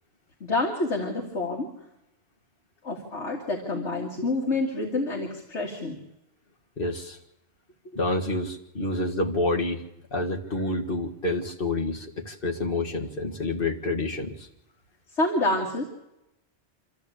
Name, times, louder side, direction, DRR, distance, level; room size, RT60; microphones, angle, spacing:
voice 1, 0.4-1.7 2.8-6.0 15.1-15.8, left 2 dB, 70° left, 0 dB, 2.4 m, -28 dB
voice 2, 6.8-7.2 8.0-9.8 10.1-14.5, left 2 dB, 50° left, 1 dB, 2.0 m, -28 dB
26.5 x 13.5 x 8.4 m, 0.90 s
omnidirectional pair, 1.2 m